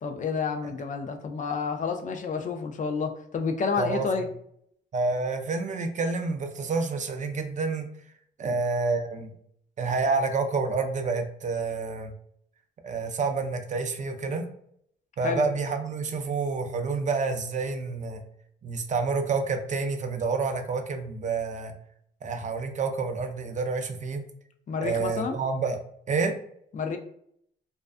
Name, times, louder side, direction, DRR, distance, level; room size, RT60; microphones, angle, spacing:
voice 1, 0.0-4.3 15.2-15.4 24.7-25.4 26.7-27.0, left 5 dB, 40° left, 5 dB, 0.4 m, -29 dB
voice 2, 4.9-7.9 8.4-9.3 9.8-12.1 12.8-14.5 15.2-18.2 18.6-21.7 22.2-24.2 24.8-25.8 26.1-26.3, right 4 dB, 40° right, 6 dB, 0.4 m, -28 dB
2.4 x 2.2 x 2.4 m, 0.68 s
cardioid pair, 90°, 20 cm